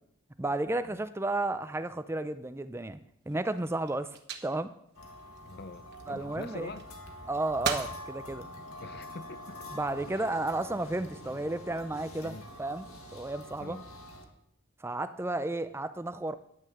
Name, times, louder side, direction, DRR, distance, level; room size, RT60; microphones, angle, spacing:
voice 1, 0.4-3.0 3.3-4.2 4.4-4.7 6.1-6.7 7.3-8.5 9.7-12.8 13.1-13.8 14.8-16.4, right 2 dB, 10° right, 0.4 m, -33 dB
sound 1, 3.2-6.3 6.8-7.3 7.6-8.0 8.6-9.3 10.0-10.4, right 6 dB, 50° right, 1.3 m, -39 dB
sound 2, 5.0-14.3, left 1 dB, 75° left, 1.8 m, -46 dB
voice 2, 5.4-6.9 8.8-9.7 10.1-10.3 12.2-12.5 13.6-13.9, left 3 dB, 45° left, 0.5 m, -45 dB
10.5 x 6.4 x 7.8 m
head